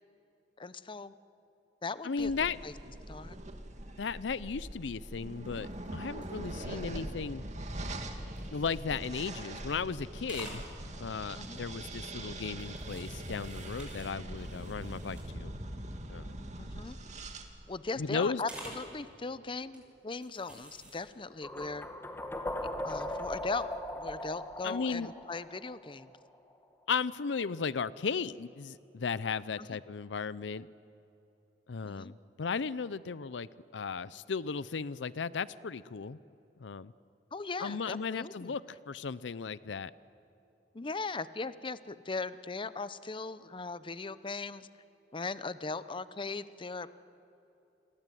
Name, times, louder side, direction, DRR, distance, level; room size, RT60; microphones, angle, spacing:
voice 1, 0.6-1.1 1.8-2.3 2.6-2.7 3.1-3.4 6.6-6.8 11.4-11.6 16.6-17.0 17.7-21.9 22.8-23.7 24.0-26.1 29.6-29.7 31.8-32.1 37.3-38.6 40.7-44.7 45.1-46.9, left 3 dB, 30° left, 14 dB, 0.7 m, -39 dB
voice 2, 2.0-2.6 4.0-7.4 8.5-10.6 11.0-15.5 16.1-16.3 18.0-18.4 24.6-25.1 26.9-30.7 31.7-36.2 36.6-36.9 37.6-39.9, left 5 dB, 85° left, 18 dB, 0.6 m, -35 dB
sound 1, 2.2-17.4, right 1 dB, 40° right, 2.3 m, -42 dB
sound 2, 5.4-9.1 9.5-9.9 10.2-10.7 11.8-12.1 12.6-15.5 15.9-16.0 16.3-16.5 16.8-17.5 18.4-18.9 19.6-19.8 20.2-21.0, right 1 dB, 5° right, 6.7 m, -50 dB
sound 3, 21.4-26.4, left 1 dB, 15° left, 1.6 m, -39 dB
29.0 x 22.0 x 9.3 m, 2.9 s
head